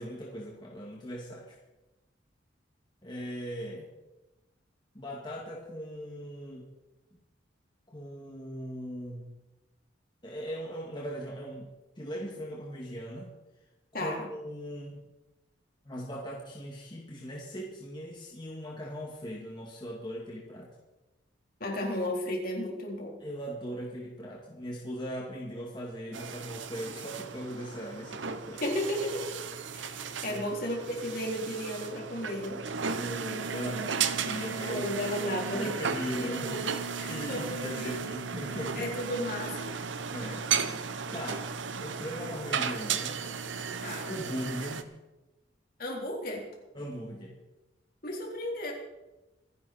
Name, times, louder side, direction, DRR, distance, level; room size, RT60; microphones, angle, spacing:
voice 1, 0.0-1.6 3.0-3.9 4.9-6.7 7.9-9.3 10.2-13.4 14.0-15.1 15.9-20.7 23.2-28.6 30.2-30.4 32.9-35.0 35.6-36.6 37.0-38.9 40.1-40.5 41.1-41.5 41.8-43.2 44.1-44.9 46.7-47.3, equal, 25° left, -2 dB, 2.2 m, -39 dB
voice 2, 13.9-14.3 21.6-23.2 28.6-29.3 29.7-32.6 34.7-35.8 36.2-38.0 38.7-39.7 43.8-44.1 45.8-46.4 48.0-48.7, left 1 dB, 50° left, -1 dB, 3.8 m, -34 dB
sound 1, 26.1-44.8, right 6 dB, 85° right, 1.0 m, -35 dB
26.0 x 10.5 x 4.3 m, 1.0 s
head